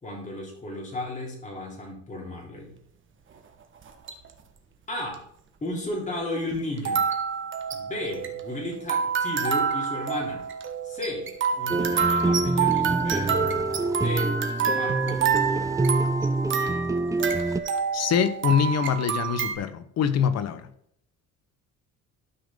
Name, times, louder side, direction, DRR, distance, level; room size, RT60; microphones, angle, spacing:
voice 1, 0.0-2.7 4.9-5.3 5.6-7.0 7.7-10.5 10.8-11.3 11.6-13.5 14.0-14.4 14.8-16.0, left 1 dB, 25° left, 3.6 m, -34 dB
sound 1, 3.8-4.3 5.1-5.2 6.8-19.5, right 6 dB, 40° right, 1.4 m, -28 dB
sound 2, 11.7-17.6, right 2 dB, 10° right, 0.4 m, -26 dB
voice 2, 17.9-20.7, left 7 dB, 55° left, 1.0 m, -24 dB
12.5 x 5.3 x 3.8 m
cardioid pair, 110°, 30 cm